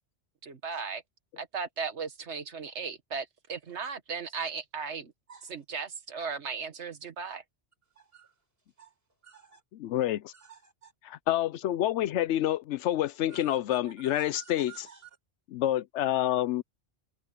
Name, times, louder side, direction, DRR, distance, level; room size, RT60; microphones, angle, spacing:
voice 1, 0.4-1.0 1.4-5.1 5.4-7.4, right 5 dB, 75° right, 1.7 m, -36 dB
voice 2, 7.9-8.3 8.8-8.9 9.2-9.6 10.3-10.9 13.3-15.1, right 8 dB, 55° right, 6.6 m, -52 dB
voice 3, 9.7-10.3 11.0-14.9 15.5-16.6, left 13 dB, 85° left, 0.9 m, -28 dB
omnidirectional pair, 1.2 m